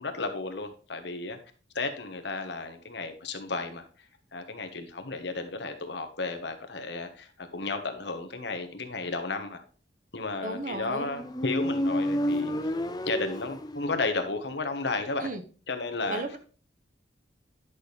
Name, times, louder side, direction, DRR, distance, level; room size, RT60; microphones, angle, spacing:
voice 1, 0.0-1.4 1.7-3.8 4.3-9.6 10.1-12.5 13.1-15.3 15.7-16.2, left 3 dB, 65° left, 6 dB, 1.4 m, -33 dB
voice 2, 10.4-11.1 15.2-15.4 16.1-16.4, right 2 dB, 45° right, 7 dB, 1.2 m, -34 dB
Motorcycle, 10.7-14.3, equal, 20° left, 0.7 m, -30 dB
11.0 x 6.3 x 3.3 m, 0.38 s
head